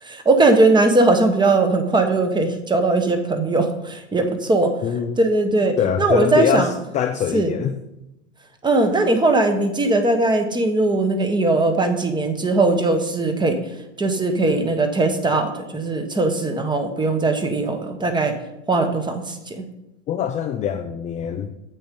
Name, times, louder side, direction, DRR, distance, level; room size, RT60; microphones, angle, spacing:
voice 1, 0.0-4.8 5.2-6.7 7.3-7.5 8.6-13.6 14.0-18.3 18.7-19.7, right 2 dB, 10° right, 7 dB, 1.2 m, -19 dB
voice 2, 4.8-5.2 5.8-7.8 20.1-21.5, left 8 dB, 20° left, 7 dB, 0.4 m, -23 dB
8.6 x 7.3 x 5.3 m, 0.91 s
hypercardioid pair, 115°, 36 cm